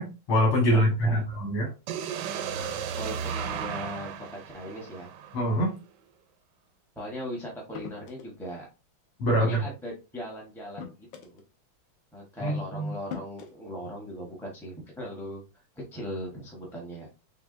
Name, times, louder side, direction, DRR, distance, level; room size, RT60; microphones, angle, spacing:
voice 1, 0.0-1.7 5.3-5.7 9.2-9.6 12.4-12.9, equal, 85° left, -3 dB, 2.4 m, -24 dB
voice 2, 0.7-1.2 2.5-2.6 3.0-5.3 7.0-8.7 9.4-11.4 12.1-15.4 15.9-17.1, equal, ahead, -4 dB, 0.7 m, -39 dB
Roar from the Depths, 1.9-5.8, right 7 dB, 75° right, 1.0 m, -35 dB
sound 1, 7.7-8.4 9.8-10.0 10.8-11.4 12.5-12.6 13.1-13.5, left 7 dB, 65° left, 1.5 m, -40 dB
6.6 x 2.6 x 2.5 m, 0.30 s
omnidirectional pair, 2.3 m